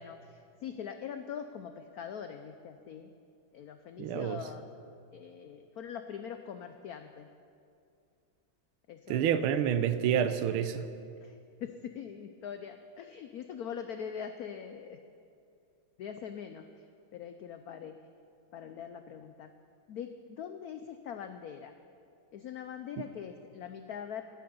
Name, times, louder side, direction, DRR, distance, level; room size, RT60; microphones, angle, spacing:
voice 1, 0.0-3.1 3.5-4.7 5.1-7.3 8.9-9.4 11.2-15.0 16.0-16.7 17.1-18.0 18.5-19.5 19.9-21.7 22.3-24.2, left 8 dB, 90° left, 8 dB, 0.8 m, -42 dB
voice 2, 4.0-4.4 9.1-10.9, right 9 dB, 85° right, 11 dB, 1.6 m, -28 dB
16.0 x 10.5 x 5.3 m, 2.5 s
omnidirectional pair, 2.3 m